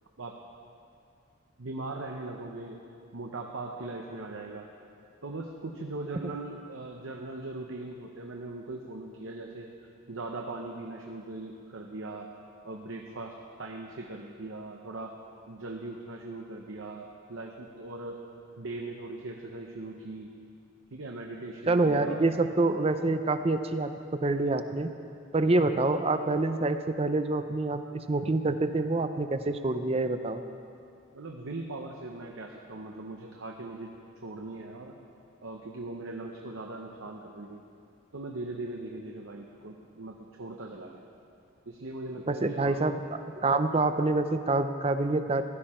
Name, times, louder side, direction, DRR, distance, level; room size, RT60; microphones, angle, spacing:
voice 1, 1.6-2.8 3.1-4.7 5.2-9.7 10.1-12.3 12.6-13.3 13.6-15.1 15.5-18.2 18.6-20.3 20.9-22.2 31.1-33.9 34.2-34.9 35.4-37.6 38.1-41.0 41.7-42.8, right 2 dB, 75° right, 1 dB, 0.8 m, -40 dB
voice 2, 21.7-24.9 25.3-30.4 42.3-45.4, right 2 dB, 30° right, 9 dB, 0.5 m, -27 dB
15.5 x 12.0 x 4.4 m, 2.5 s
head